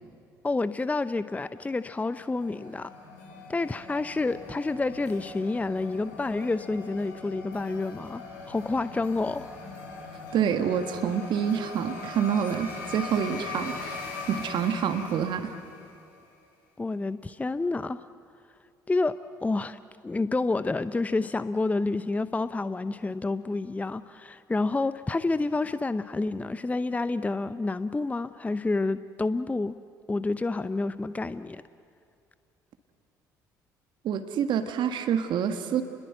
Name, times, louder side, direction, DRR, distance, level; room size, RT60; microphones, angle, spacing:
voice 1, 0.4-2.9 3.5-9.5 16.8-18.0 18.9-19.8 20.0-29.8 30.1-31.6, left 3 dB, 15° left, 13 dB, 0.7 m, -29 dB
sound 1, 1.5-16.2, left 3 dB, 80° left, 5.4 m, -41 dB
voice 2, 10.3-14.0 14.3-15.5 34.0-35.8, right 8 dB, 55° right, 7 dB, 1.7 m, -27 dB
29.5 x 21.5 x 7.9 m, 2.3 s
hypercardioid pair, 55°, 9 cm